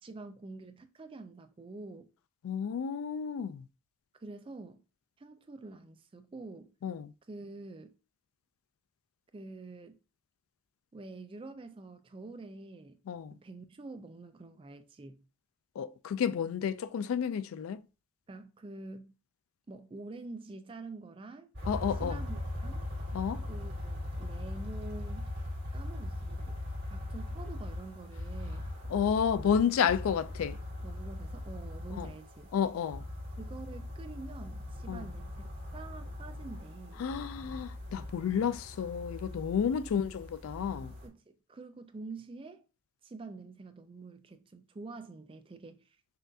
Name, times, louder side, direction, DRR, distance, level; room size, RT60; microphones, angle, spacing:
voice 1, 0.0-2.1 4.2-4.8 5.2-6.7 7.3-7.9 9.3-10.0 10.9-13.0 13.3-15.2 18.3-19.1 19.7-21.5 22.0-22.9 23.5-25.3 25.7-26.6 26.9-28.6 29.4-29.6 30.8-32.5 33.4-35.5 35.7-37.0 39.6-39.8 41.0-42.6 43.0-45.9, right 3 dB, 25° right, 0.3 m, -47 dB
voice 2, 2.4-3.7 6.8-7.1 13.1-13.3 15.8-17.8 21.6-22.2 23.1-23.4 28.9-30.6 32.0-32.1 32.5-33.0 34.9-35.0 37.0-41.0, left 7 dB, 80° left, 0.3 m, -31 dB
sound 1, 21.5-41.1, left 1 dB, 50° right, 1.6 m, -40 dB
5.6 x 2.5 x 2.6 m
head